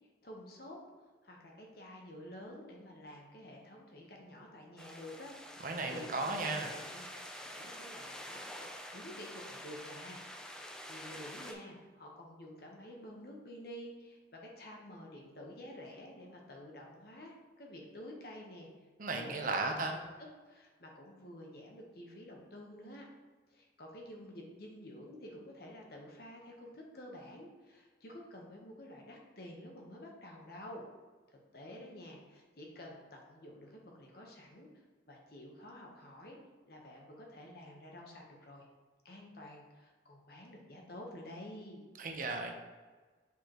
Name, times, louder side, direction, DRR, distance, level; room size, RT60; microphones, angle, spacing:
voice 1, 0.2-0.8 1.2-18.7 19.2-19.3 19.7-20.1 20.5-23.1 23.5-30.9 31.3-34.7 35.1-36.4 36.7-38.7 39.0-41.8, left 1 dB, 55° left, -1 dB, 1.1 m, -50 dB
sound 1, 4.8-11.5, equal, 5° left, 0.4 m, -47 dB
voice 2, 5.6-6.7 19.0-19.9 42.0-42.5, right 3 dB, 45° right, 3 dB, 0.8 m, -35 dB
6.8 x 5.0 x 3.0 m, 1.4 s
head